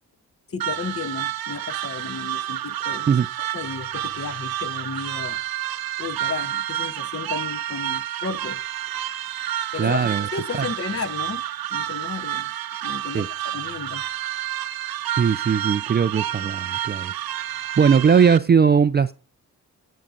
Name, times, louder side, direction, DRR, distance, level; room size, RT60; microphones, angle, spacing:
voice 1, 0.5-3.1 3.5-5.4 6.0-8.6 9.7-11.4 11.7-12.5 12.8-14.0, left 5 dB, 35° left, 1.0 m, -33 dB
sound 1, 0.6-18.4, right 12 dB, 60° right, 0.8 m, -29 dB
voice 2, 9.8-10.3 13.1-13.3 15.2-17.1 17.8-19.1, right 6 dB, 25° right, 0.4 m, -19 dB
16.5 x 8.2 x 2.6 m
hypercardioid pair, 40°, 41 cm